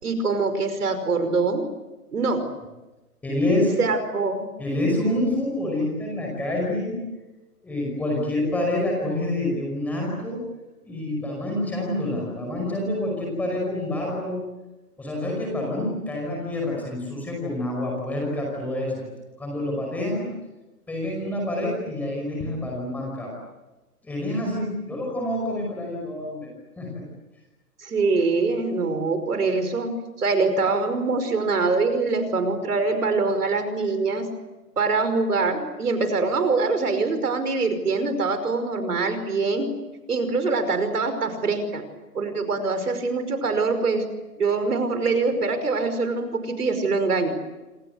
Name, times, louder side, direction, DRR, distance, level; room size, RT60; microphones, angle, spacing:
voice 1, 0.0-1.6 2.1-2.4 3.8-4.5 27.8-29.9 30.2-34.3 34.8-39.7 40.1-41.8 42.1-44.0 44.4-47.4, right 3 dB, 70° right, 9 dB, 5.5 m, -24 dB
voice 2, 3.2-3.7 4.6-6.9 7.6-10.4 10.8-14.4 15.0-19.0 19.4-20.3 20.9-23.3 24.0-27.0, left 1 dB, 5° left, -1 dB, 5.3 m, -27 dB
27.5 x 27.0 x 8.0 m, 1.1 s
hypercardioid pair, 170°, 47 cm